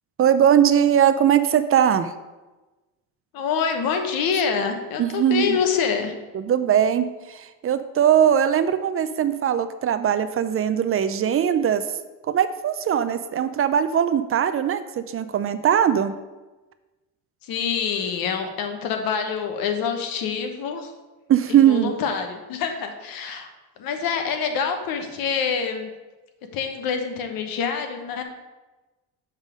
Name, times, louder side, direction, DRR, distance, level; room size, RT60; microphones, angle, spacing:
voice 1, 0.2-2.1 5.0-5.6 6.3-11.8 12.3-16.1 21.3-21.9, right 9 dB, 40° right, 11 dB, 0.5 m, -20 dB
voice 2, 3.3-6.1 17.4-20.9 21.5-23.5 23.8-25.9 26.5-28.2, left 6 dB, 75° left, 5 dB, 1.1 m, -26 dB
7.2 x 3.7 x 5.2 m, 1.1 s
cardioid pair, 90°, 36 cm